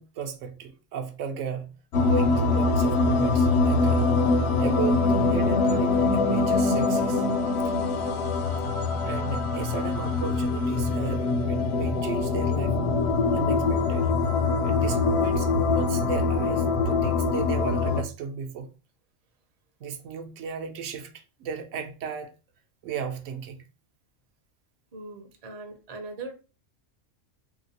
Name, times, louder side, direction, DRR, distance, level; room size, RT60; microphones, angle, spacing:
voice 1, 0.0-1.7 2.0-4.1 4.6-7.3 7.6-7.7 9.0-12.7 13.3-14.1 14.6-18.7 19.8-22.3 22.8-23.6, right 6 dB, 75° right, 0.9 m, -35 dB
sound 1, 1.9-18.0, left 3 dB, 65° left, 0.8 m, -23 dB
voice 2, 24.9-26.3, right 3 dB, 40° right, 0.5 m, -40 dB
3.1 x 2.9 x 2.7 m
omnidirectional pair, 1.3 m